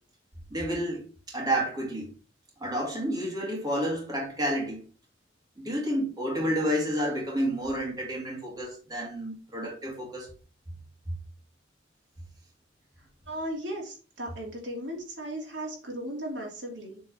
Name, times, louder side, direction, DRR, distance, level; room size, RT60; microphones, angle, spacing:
voice 1, 0.5-2.1 2.6-4.8 5.6-10.3, equal, 20° right, 2.7 m, -30 dB
voice 2, 13.3-17.0, right 1 dB, 70° right, 2.8 m, -36 dB
7.7 x 4.5 x 4.5 m
head